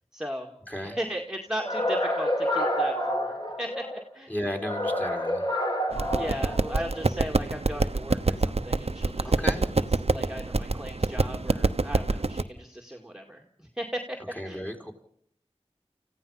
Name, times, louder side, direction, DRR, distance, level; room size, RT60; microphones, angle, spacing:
voice 1, 0.1-0.5 0.8-4.3 6.2-9.8 10.1-14.2 14.4-14.6, equal, 5° right, 2 dB, 2.1 m, -37 dB
voice 2, 0.7-1.0 4.3-5.5 9.2-9.7 14.4-14.9, equal, 15° left, 5 dB, 4.2 m, -34 dB
sound 1, 1.6-4.0 4.6-7.0, equal, 35° left, 3.1 m, -28 dB
sound 2, 5.9-12.4, right 3 dB, 60° right, 0.9 m, -26 dB
30.0 x 15.5 x 5.7 m, 0.63 s
wide cardioid pair, 45°, 11 cm